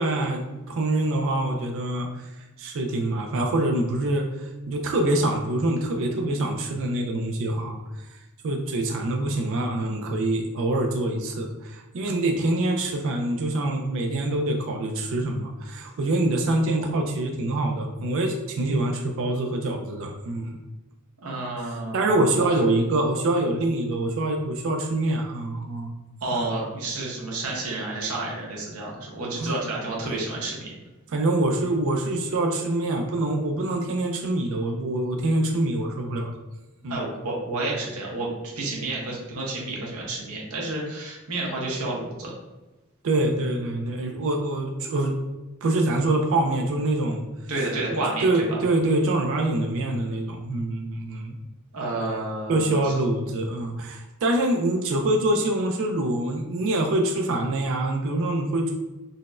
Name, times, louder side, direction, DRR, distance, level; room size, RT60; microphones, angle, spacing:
voice 1, 0.0-2.3 2.6-8.2 8.4-20.6 21.9-25.9 26.3-26.5 29.4-29.6 31.1-36.3 36.8-37.1 43.0-45.1 45.6-47.2 48.2-51.4 52.5-58.7, right 2 dB, 65° right, 2 dB, 0.4 m, -25 dB
voice 2, 21.2-22.6 26.2-30.7 36.9-42.3 47.5-48.6 51.7-52.9, right 2 dB, 85° right, -3 dB, 0.9 m, -30 dB
3.9 x 2.1 x 2.4 m, 1.1 s
head